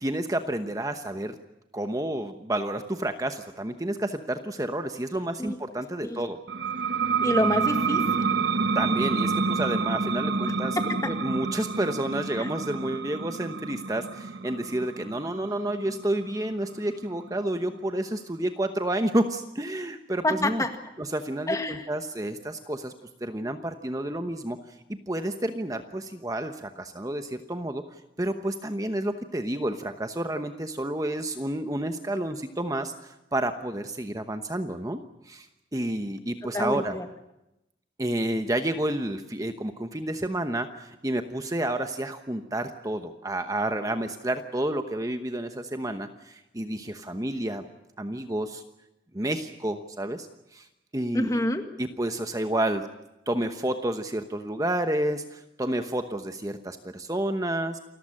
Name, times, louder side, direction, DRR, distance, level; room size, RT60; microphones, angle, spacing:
voice 1, 0.0-1.3 1.7-6.4 8.7-10.8 11.1-20.7 21.0-22.9 23.2-24.6 24.9-27.8 28.2-35.0 35.3-35.5 35.7-37.0 38.0-47.6 48.0-48.6 49.1-50.3 50.5-50.7 50.9-51.4 51.8-52.9 53.3-57.8, right 1 dB, 20° right, 7 dB, 1.0 m, -30 dB
sound 1, 6.5-17.8, right 5 dB, 80° right, 1.0 m, -28 dB
voice 2, 7.2-8.3 10.4-11.1 12.4-12.5 20.2-20.8 21.5-21.9 36.5-37.1 51.1-51.6, left 1 dB, 20° left, 6 dB, 1.8 m, -27 dB
28.5 x 14.0 x 10.0 m, 0.91 s
head